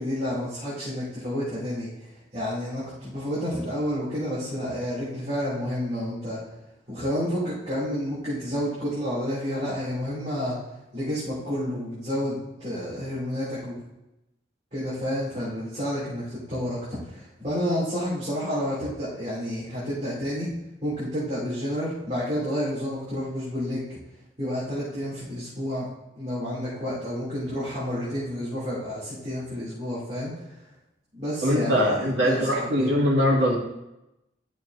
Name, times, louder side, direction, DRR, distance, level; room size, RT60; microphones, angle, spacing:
voice 1, 0.0-6.4 6.9-10.6 10.9-13.7 14.7-20.5 20.8-23.8 24.4-25.9 26.2-30.5 31.1-32.9, equal, 35° right, -11 dB, 2.7 m, -30 dB
voice 2, 31.4-33.6, equal, 65° right, -3 dB, 1.9 m, -22 dB
11.5 x 6.3 x 2.6 m, 0.91 s
head